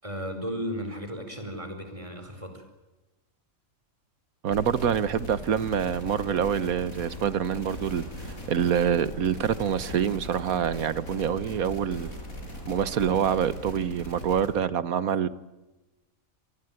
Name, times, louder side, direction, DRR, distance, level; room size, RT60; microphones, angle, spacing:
voice 1, 0.0-2.6, equal, 20° right, 6 dB, 5.0 m, -35 dB
voice 2, 4.4-8.0 8.5-12.1 12.7-15.3, right 8 dB, 85° right, 16 dB, 1.5 m, -26 dB
sound 1, 4.5-14.5, equal, 80° left, 6.4 m, -40 dB
27.0 x 19.5 x 9.2 m, 1.1 s
omnidirectional pair, 1.4 m